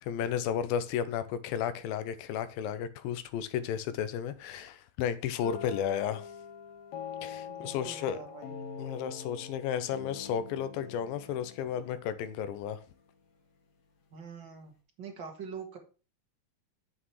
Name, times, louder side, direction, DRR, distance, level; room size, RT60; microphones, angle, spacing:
voice 1, 0.0-6.3 7.2-8.2 8.8-12.8, left 9 dB, 85° left, 2.4 m, -33 dB
sound 1, 5.4-13.1, left 6 dB, 70° left, 3.2 m, -44 dB
voice 2, 7.5-8.5 14.1-14.7 15.0-15.8, right 5 dB, 45° right, 1.5 m, -44 dB
8.6 x 7.5 x 3.2 m
omnidirectional pair, 4.2 m